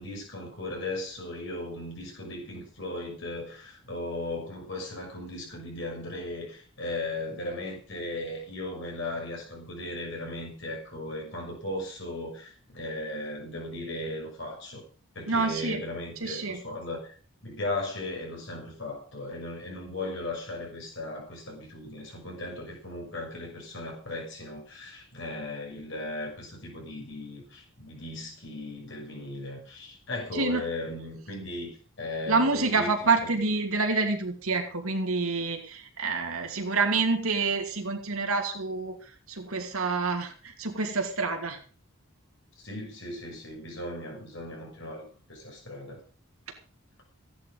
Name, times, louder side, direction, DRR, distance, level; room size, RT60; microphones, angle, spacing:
voice 1, 0.0-14.8 15.1-17.2 17.4-32.9 33.2-33.3 42.6-46.0, left 2 dB, 55° left, 0 dB, 6.4 m, -37 dB
voice 2, 15.3-15.8 16.2-16.6 30.3-30.6 32.3-41.6, right 3 dB, 80° right, 4 dB, 2.6 m, -27 dB
15.5 x 10.5 x 5.5 m, 0.39 s
head